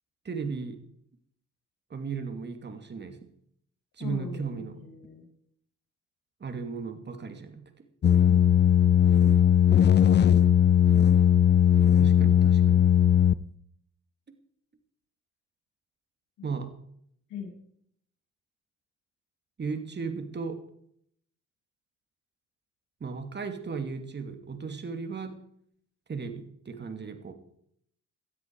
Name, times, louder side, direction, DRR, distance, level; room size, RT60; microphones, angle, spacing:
voice 1, 0.2-0.8 1.9-3.2 4.0-4.8 6.4-7.6 12.0-12.8 16.4-16.7 19.6-20.6 23.0-25.3 26.1-27.3, right 5 dB, 35° right, 7 dB, 2.6 m, -35 dB
voice 2, 4.0-5.2 16.4-16.5 17.3-17.5, left 7 dB, 80° left, 0 dB, 6.3 m, -41 dB
sound 1, 8.0-13.4, left 9 dB, 35° left, 0.5 m, -19 dB
18.5 x 12.5 x 4.7 m, 0.68 s
cardioid pair, 90°, 30 cm